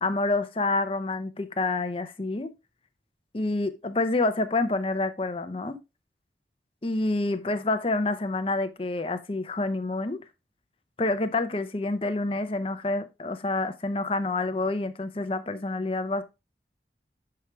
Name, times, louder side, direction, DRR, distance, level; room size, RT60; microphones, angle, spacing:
voice 1, 0.0-2.5 3.3-5.8 6.8-10.2 11.0-16.2, left 2 dB, 30° left, 0.6 m, -28 dB
7.1 x 4.7 x 3.1 m
head